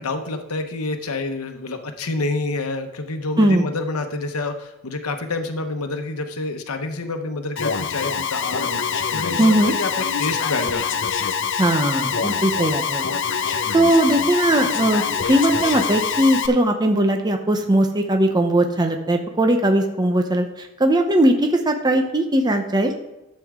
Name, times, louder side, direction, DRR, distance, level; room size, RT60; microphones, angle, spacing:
voice 1, 0.0-11.0, left 3 dB, 90° left, 6 dB, 0.9 m, -28 dB
Alarm, 7.6-16.5, left 6 dB, 60° left, 0.7 m, -24 dB
voice 2, 9.4-9.7 11.6-22.9, right 1 dB, 20° right, 5 dB, 0.8 m, -19 dB
12.5 x 7.7 x 3.7 m, 0.97 s
head